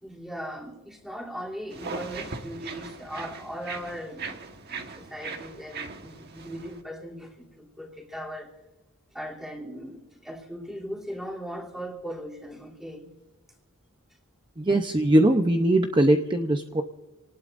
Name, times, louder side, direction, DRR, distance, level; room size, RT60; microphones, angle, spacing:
voice 1, 0.0-8.5 9.1-13.1, equal, ahead, -3 dB, 3.0 m, -39 dB
sound 1, 1.7-6.8, right 4 dB, 50° right, 1.4 m, -39 dB
voice 2, 14.6-16.8, right 1 dB, 20° right, 5 dB, 0.7 m, -21 dB
27.5 x 19.0 x 2.6 m, 1.2 s
head